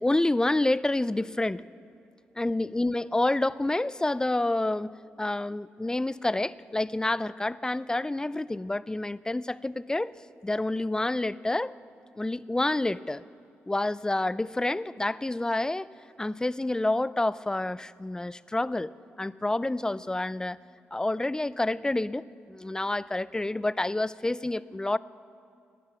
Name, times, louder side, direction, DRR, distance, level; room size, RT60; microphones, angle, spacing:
voice 1, 0.0-1.6 2.4-10.1 10.4-11.7 12.2-13.2 13.7-15.9 16.2-18.9 19.2-20.6 20.9-25.0, left 2 dB, 15° left, 19 dB, 0.3 m, -28 dB
14.5 x 10.5 x 6.0 m, 2.5 s
supercardioid pair, 50°, 5 cm